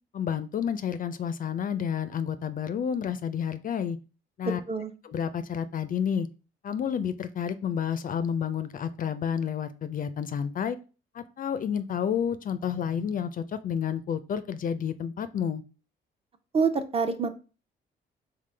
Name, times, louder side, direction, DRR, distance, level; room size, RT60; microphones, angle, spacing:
voice 1, 0.1-4.0 4.4-4.6 5.0-6.3 6.6-10.8 11.1-15.6, left 8 dB, 45° left, 12 dB, 0.4 m, -30 dB
voice 2, 4.4-4.9 16.5-17.3, right 5 dB, 30° right, 8 dB, 0.6 m, -26 dB
3.7 x 3.5 x 3.2 m, 0.34 s
cardioid pair, 90°, 20 cm